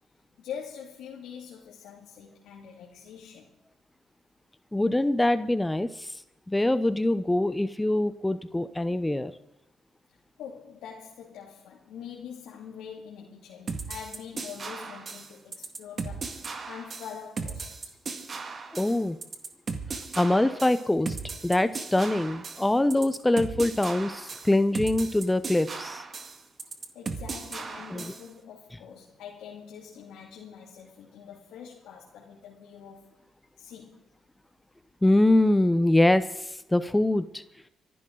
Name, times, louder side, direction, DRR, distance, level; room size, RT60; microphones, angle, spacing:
voice 1, 0.4-3.5 10.4-17.8 26.9-33.1 33.6-34.0, left 7 dB, 85° left, -2 dB, 2.4 m, -44 dB
voice 2, 4.7-6.2 6.5-9.3 18.7-19.2 20.2-21.2 21.4-26.0 27.9-28.1 35.0-37.4, left 1 dB, 10° left, 13 dB, 0.7 m, -24 dB
sound 1, 13.7-28.3, right 4 dB, 40° right, 2.0 m, -37 dB
24.5 x 12.0 x 3.9 m, 0.87 s
cardioid pair, 90°, 0 cm